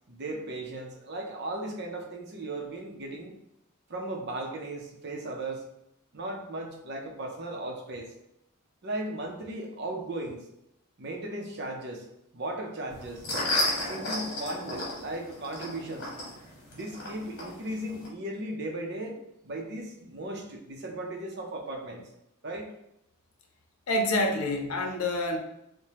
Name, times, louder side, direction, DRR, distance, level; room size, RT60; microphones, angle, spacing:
voice 1, 0.1-3.3 3.9-5.6 6.1-8.1 8.8-10.5 11.0-12.1 12.3-13.3 13.7-16.1 16.7-22.1 22.4-22.7, right 1 dB, 50° right, 2 dB, 0.6 m, -36 dB
sound 1, 12.9-18.1, left 1 dB, 50° left, 1.2 m, -33 dB
voice 2, 23.9-25.4, left 1 dB, 90° left, 4 dB, 0.6 m, -27 dB
4.8 x 2.2 x 2.8 m, 0.82 s
head